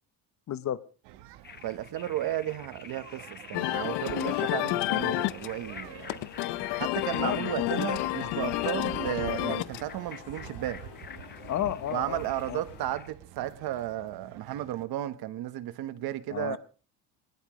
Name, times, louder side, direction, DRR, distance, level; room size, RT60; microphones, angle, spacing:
voice 1, 0.5-0.8 7.2-7.7 11.5-12.2 12.5-12.6 16.3-16.6, left 11 dB, 45° left, 0.8 m, -32 dB
sound 1, 1.0-14.8, right 12 dB, 90° right, 1.3 m, -48 dB
sound 2, 1.4-13.1, left 6 dB, 25° left, 1.2 m, -48 dB
voice 2, 1.6-6.0 6.8-10.8 11.9-16.6, right 13 dB, 65° right, 1.3 m, -34 dB
sound 3, 3.5-12.9, left 17 dB, 75° left, 0.8 m, -32 dB
21.0 x 20.0 x 3.2 m
cardioid pair, 140°, 40 cm